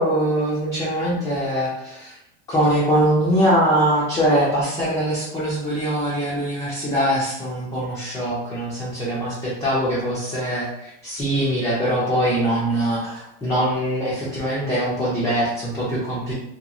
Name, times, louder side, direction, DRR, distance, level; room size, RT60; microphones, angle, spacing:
voice 1, 0.0-2.1 2.5-16.3, right 1 dB, 10° left, -7 dB, 0.4 m, -22 dB
2.9 x 2.2 x 2.4 m, 0.83 s
supercardioid pair, 150°, 32 cm